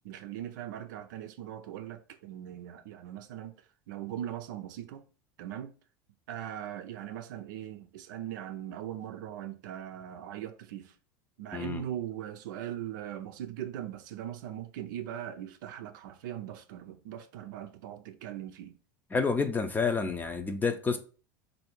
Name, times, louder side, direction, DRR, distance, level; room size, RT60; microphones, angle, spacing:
voice 1, 0.0-3.6 3.9-5.0 5.4-5.7 6.3-10.9 11.4-18.8, right 11 dB, 75° right, 0.5 m, -40 dB
voice 2, 11.5-11.8 19.1-21.0, left 4 dB, 20° left, 0.6 m, -29 dB
3.2 x 2.7 x 4.4 m
hypercardioid pair, 95°, 10 cm